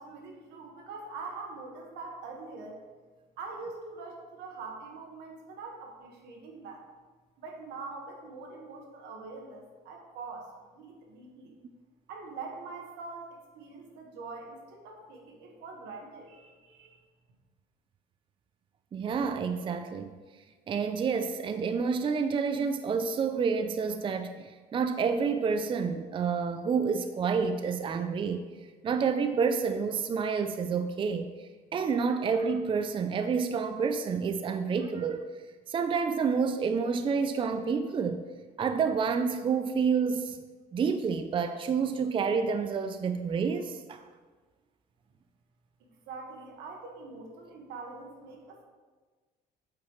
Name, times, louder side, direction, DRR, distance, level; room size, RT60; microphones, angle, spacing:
voice 1, 0.0-2.8 3.4-6.8 7.4-11.6 12.1-17.0 45.8-48.6, right 4 dB, 85° right, 1 dB, 1.7 m, -44 dB
voice 2, 18.9-20.1 20.7-28.4 28.8-31.3 31.7-35.2 35.7-38.2 38.6-40.4 40.7-44.0, right 5 dB, 30° right, 9 dB, 0.4 m, -29 dB
8.3 x 7.9 x 3.2 m, 1.4 s
cardioid pair, 110°, 17 cm